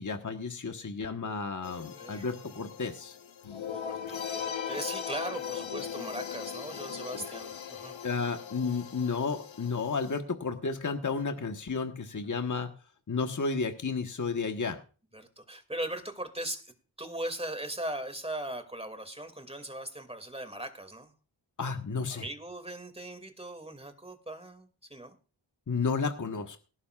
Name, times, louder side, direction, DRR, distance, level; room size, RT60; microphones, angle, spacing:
voice 1, 0.0-3.2 8.0-12.7 13.1-14.8 21.6-22.2 25.7-26.6, left 4 dB, 40° left, 5 dB, 1.4 m, -32 dB
sound 1, 1.6-10.2, left 8 dB, 90° left, 1.2 m, -39 dB
voice 2, 1.9-2.3 3.7-8.0 15.1-21.1 22.1-25.2, right 1 dB, 15° right, 8 dB, 2.4 m, -39 dB
18.5 x 11.5 x 2.5 m, 0.35 s
cardioid pair, 50°, 45 cm